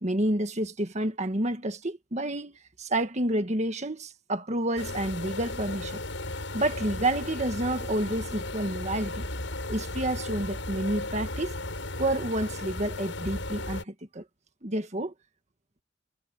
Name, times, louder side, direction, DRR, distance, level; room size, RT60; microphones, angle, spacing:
voice 1, 0.0-6.0 6.5-9.2 9.7-11.5 12.0-14.2 14.6-15.1, right 1 dB, 35° right, 1.6 m, -29 dB
sound 1, 4.8-13.8, left 2 dB, 80° left, 7.8 m, -35 dB
head